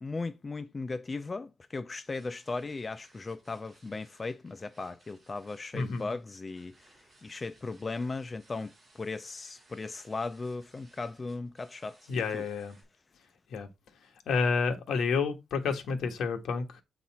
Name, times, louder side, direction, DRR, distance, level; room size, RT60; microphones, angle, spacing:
voice 1, 0.0-6.9 7.2-12.4, left 3 dB, 20° left, 0.3 m, -37 dB
sound 1, 2.0-12.8, right 2 dB, 30° right, 5.2 m, -63 dB
voice 2, 5.7-6.1 12.1-12.8 13.5-13.7 14.0-16.8, left 5 dB, 65° left, 1.4 m, -30 dB
8.3 x 4.1 x 4.2 m
wide cardioid pair, 160°, 0 cm